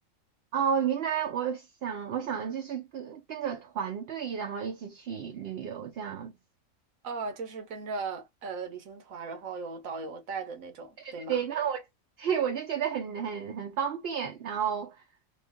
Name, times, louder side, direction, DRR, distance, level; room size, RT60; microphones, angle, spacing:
voice 1, 0.5-6.3 11.0-11.8 12.2-15.0, right 8 dB, 60° right, 0.7 m, -32 dB
voice 2, 7.0-11.4, right 4 dB, 80° right, 1.4 m, -37 dB
3.1 x 2.4 x 3.5 m
omnidirectional pair, 1.4 m